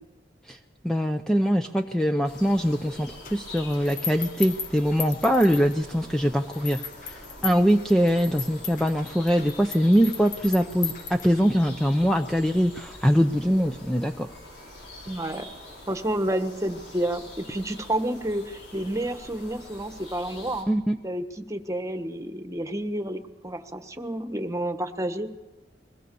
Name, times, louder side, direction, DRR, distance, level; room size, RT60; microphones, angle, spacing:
voice 1, 0.8-6.8 7.1-14.3 20.7-21.0, equal, 5° left, 6 dB, 0.6 m, -23 dB
sound 1, 2.2-20.6, left 1 dB, 75° left, 6.2 m, -45 dB
sound 2, 3.2-6.1 6.5-11.7, left 7 dB, 50° left, 1.3 m, -37 dB
voice 2, 15.1-15.5 15.9-20.7 21.0-25.3, right 1 dB, 20° right, 7 dB, 1.3 m, -30 dB
22.0 x 17.5 x 7.0 m, 1.1 s
head